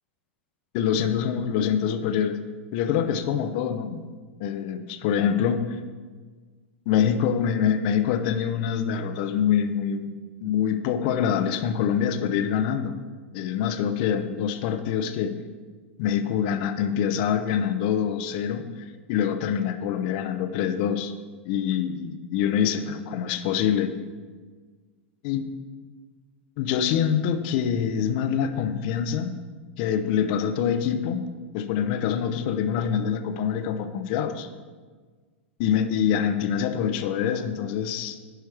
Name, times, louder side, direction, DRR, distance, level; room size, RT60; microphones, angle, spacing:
voice 1, 0.7-2.4 2.7-4.0 4.4-5.8 6.9-10.1 10.4-13.0 13.3-15.4 16.0-21.1 21.4-23.9 25.2-25.5 26.6-29.4 29.8-31.2 31.5-34.5 35.6-38.2, left 8 dB, 45° left, 9 dB, 0.7 m, -25 dB
11.5 x 4.6 x 4.7 m, 1.4 s
figure-of-eight pair, 95°, 7 cm